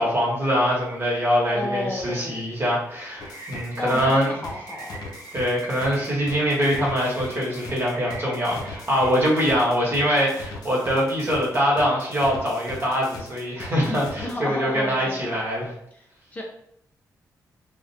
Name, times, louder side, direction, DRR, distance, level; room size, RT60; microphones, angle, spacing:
voice 1, 0.0-4.3 5.3-15.7, equal, 40° right, -4 dB, 0.9 m, -23 dB
voice 2, 1.5-2.4 3.8-5.0 14.2-15.4 16.3-16.4, left 1 dB, 25° left, 0 dB, 0.4 m, -31 dB
sound 1, 3.2-14.3, left 3 dB, 85° left, 0.4 m, -40 dB
sound 2, 3.2-9.2, right 2 dB, 70° right, 0.6 m, -42 dB
2.3 x 2.1 x 2.6 m, 0.71 s
cardioid pair, 110°, 6 cm